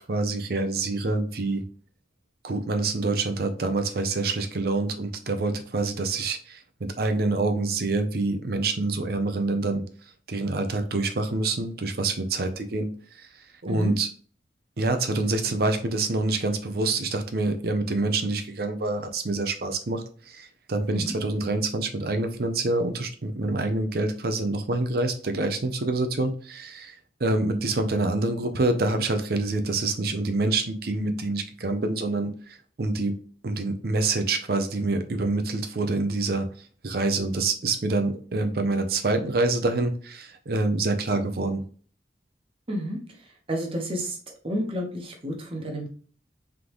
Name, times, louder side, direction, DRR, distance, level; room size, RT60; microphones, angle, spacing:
voice 1, 0.1-1.6 2.4-9.8 10.3-12.9 13.2-13.3 13.6-14.1 14.8-26.9 27.2-33.2 33.4-36.5 36.8-41.6, right 2 dB, 60° right, 7 dB, 0.6 m, -26 dB
voice 2, 42.7-43.0 43.5-44.2 44.4-45.9, equal, 30° right, 1 dB, 1.0 m, -30 dB
3.8 x 3.5 x 3.0 m, 0.43 s
head